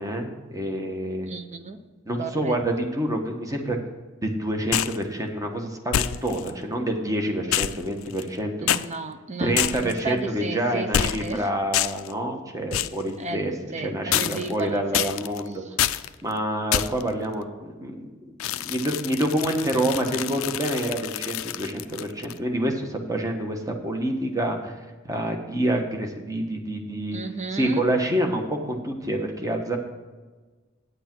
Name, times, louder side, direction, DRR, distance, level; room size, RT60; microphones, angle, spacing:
voice 1, 0.0-1.3 2.1-3.8 4.2-8.5 9.4-15.6 16.2-24.8 25.0-27.2 27.5-29.8, right 1 dB, 15° right, 3 dB, 1.1 m, -27 dB
voice 2, 1.2-1.8 2.2-2.6 8.6-11.5 13.2-15.1 27.1-27.8, right 3 dB, 35° right, 8 dB, 0.8 m, -33 dB
sound 1, 4.7-5.0 5.9-6.5 7.5-8.4 8.7-8.8 9.6-10.0 10.9-11.4 11.7-12.1 12.7-13.0 14.1-14.6 14.9-15.4 15.8-16.1 16.7-17.1 18.4-22.4, left 11 dB, 70° left, 0.4 m, -27 dB
9.2 x 8.2 x 4.5 m, 1.3 s
head